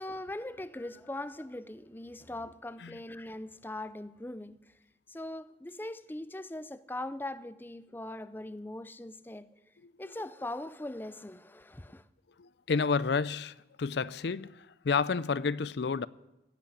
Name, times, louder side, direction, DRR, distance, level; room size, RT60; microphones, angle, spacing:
voice 1, 0.0-4.7 5.1-9.6 10.0-12.0, left 1 dB, 10° left, 0.5 m, -41 dB
voice 2, 12.4-16.1, left 5 dB, 70° left, 0.5 m, -30 dB
17.0 x 8.3 x 9.8 m
head